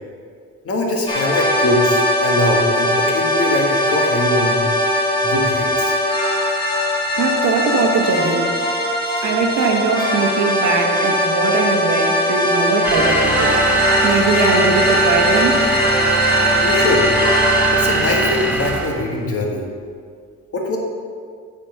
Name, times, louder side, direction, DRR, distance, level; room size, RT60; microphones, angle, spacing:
voice 1, 0.6-4.6 5.2-5.9 7.0-7.1 16.6-17.0 17.7-19.7 20.5-20.8, left 1 dB, 45° left, 0 dB, 1.7 m, -22 dB
sound 1, 1.1-18.9, left 1 dB, 15° left, 1.7 m, -20 dB
voice 2, 7.2-8.5 9.2-13.5 14.0-15.6, right 4 dB, 65° right, 2 dB, 1.4 m, -20 dB
sound 2, 12.8-19.0, right 4 dB, 5° right, 1.1 m, -20 dB
8.6 x 5.1 x 6.9 m, 2.1 s
cardioid pair, 125°, 32 cm